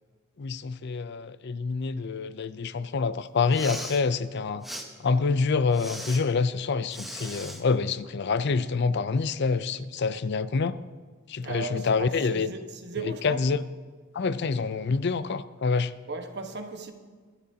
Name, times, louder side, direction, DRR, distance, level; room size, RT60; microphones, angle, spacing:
voice 1, 0.4-4.6 5.0-10.8 11.3-12.5 13.0-13.6 14.1-15.9, left 4 dB, 55° left, 0.5 m, -27 dB
Respiratory sounds, 3.4-4.0 4.6-4.9 5.7-6.2 6.9-7.6, equal, ahead, 1.2 m, -38 dB
voice 2, 11.4-13.4 16.1-16.9, right 3 dB, 55° right, 1.3 m, -36 dB
24.5 x 12.5 x 2.8 m
head